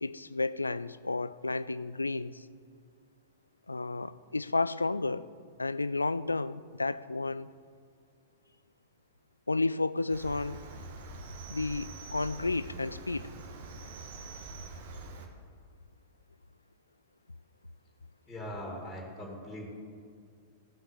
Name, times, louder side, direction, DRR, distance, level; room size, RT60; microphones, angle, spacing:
voice 1, 0.0-2.4 3.7-5.3 5.6-7.5 9.5-10.6 11.5-13.3, left 3 dB, 80° left, 17 dB, 0.3 m, -32 dB
Cricket, 10.1-15.3, right 3 dB, 55° right, 1.4 m, -44 dB
voice 2, 18.3-19.7, left 1 dB, 5° left, -6 dB, 2.7 m, -41 dB
17.0 x 5.9 x 6.5 m, 2.2 s
figure-of-eight pair, 100°, 0 cm